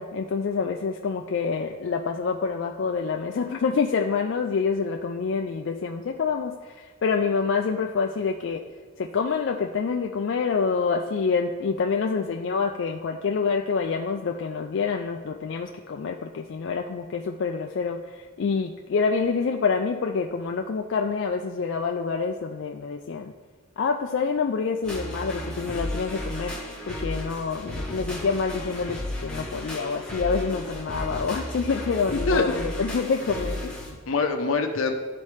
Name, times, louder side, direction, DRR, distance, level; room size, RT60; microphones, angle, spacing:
voice 1, 0.0-8.6 9.0-18.0 18.4-23.3 23.8-26.5 26.9-33.7, left 5 dB, 60° left, 2 dB, 0.4 m, -27 dB
sound 1, 24.8-33.9, left 1 dB, 5° left, 1.0 m, -33 dB
voice 2, 32.1-32.8 33.4-33.5 33.8-34.9, left 3 dB, 80° left, 5 dB, 0.8 m, -26 dB
12.0 x 4.2 x 3.2 m, 1.5 s
head